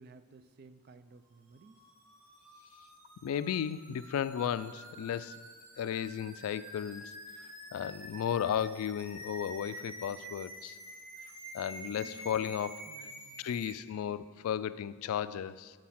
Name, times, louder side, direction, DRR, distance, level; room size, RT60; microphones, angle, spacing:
voice 1, 0.0-1.8 11.9-12.5 12.8-13.5, right 3 dB, 45° right, 12 dB, 0.4 m, -55 dB
sound 1, 1.5-13.8, right 1 dB, 75° right, 1.5 m, -48 dB
voice 2, 3.2-5.4 5.8-7.0 7.7-10.8 11.5-12.9 13.4-15.7, left 9 dB, 85° left, 17 dB, 0.3 m, -34 dB
6.6 x 6.3 x 5.7 m, 1.5 s
head